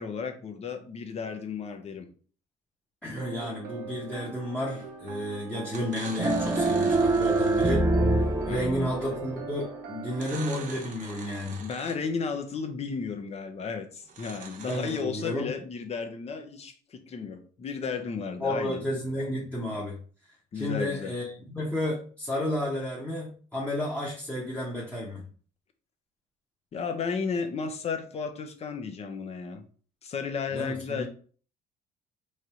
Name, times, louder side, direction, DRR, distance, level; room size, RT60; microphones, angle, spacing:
voice 1, 0.0-2.1 8.5-8.9 11.6-18.8 20.5-21.1 26.7-29.6 30.0-31.1, left 5 dB, 40° left, 6 dB, 0.7 m, -34 dB
voice 2, 3.0-7.8 8.5-11.6 14.7-15.5 18.4-20.0 20.5-25.2 30.5-31.1, left 1 dB, 5° left, -6 dB, 1.0 m, -32 dB
sound 1, 3.2-10.8, right 5 dB, 80° right, 0.9 m, -42 dB
sound 2, 4.8-5.1 5.7-7.9 10.1-12.2 14.0-15.0, right 5 dB, 50° right, 0.9 m, -44 dB
sound 3, 6.2-9.4, right 2 dB, 15° right, 0.5 m, -25 dB
3.2 x 2.6 x 4.3 m, 0.43 s
cardioid pair, 110°, 17 cm